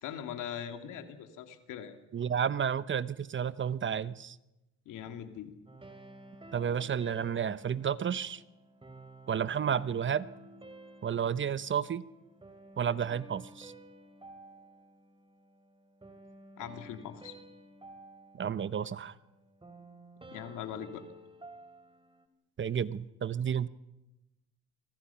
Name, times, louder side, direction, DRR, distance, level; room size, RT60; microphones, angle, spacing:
voice 1, 0.0-2.0 4.9-5.6 16.6-17.3 20.3-21.0, left 9 dB, 90° left, 6 dB, 2.6 m, -41 dB
voice 2, 2.1-4.4 6.5-8.4 9.3-10.3 11.0-12.0 12.8-13.7 18.3-19.1 22.6-23.7, right 8 dB, 40° right, 16 dB, 0.9 m, -31 dB
sound 1, 5.7-22.3, right 1 dB, 15° right, 2.9 m, -53 dB
27.5 x 24.5 x 5.8 m, 0.96 s
cardioid pair, 90°, 30 cm